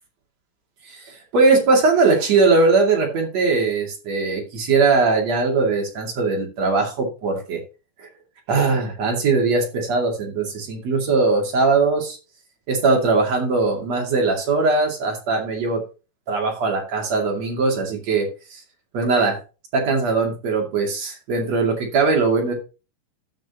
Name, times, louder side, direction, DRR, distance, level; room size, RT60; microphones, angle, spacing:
voice 1, 0.8-7.6 8.0-8.1 8.5-12.2 12.7-15.8 16.3-18.6 18.9-19.4 19.7-22.5, right 3 dB, 45° right, 0 dB, 2.8 m, -20 dB
14.0 x 6.4 x 3.0 m, 0.31 s
omnidirectional pair, 5.5 m